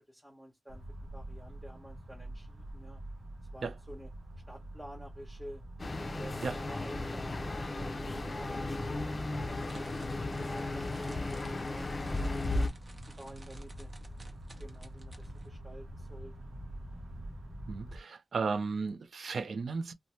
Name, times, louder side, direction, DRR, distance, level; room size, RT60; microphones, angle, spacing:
voice 1, 0.1-0.8 1.1-3.0 3.5-4.1 4.5-5.6 6.1-8.0 8.3-9.0 9.7-12.6 13.2-13.9 14.6-16.3, equal, 5° right, 0.9 m, -50 dB
sound 1, 0.7-18.0, right 1 dB, 85° right, 0.8 m, -46 dB
sound 2, 5.8-12.7, left 2 dB, 35° left, 0.4 m, -35 dB
sound 3, 9.5-15.5, right 1 dB, 35° right, 0.9 m, -56 dB
voice 2, 17.7-19.9, right 4 dB, 70° right, 0.4 m, -34 dB
2.7 x 2.1 x 3.0 m
wide cardioid pair, 95°, 0 cm